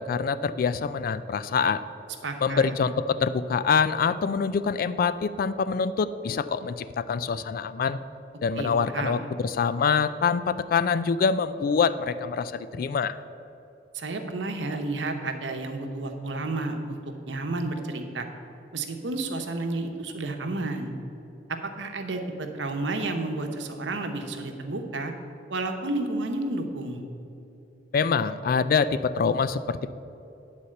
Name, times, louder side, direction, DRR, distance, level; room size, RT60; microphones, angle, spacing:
voice 1, 0.0-1.8 2.4-8.0 8.4-13.2 27.9-29.9, left 5 dB, 55° left, 14 dB, 0.3 m, -25 dB
voice 2, 2.2-2.7 8.6-9.2 13.9-17.0 17.3-18.3 18.7-20.9 21.5-25.1 25.5-27.0, right 2 dB, 80° right, 4 dB, 0.9 m, -31 dB
9.9 x 4.2 x 7.6 m, 2.8 s
head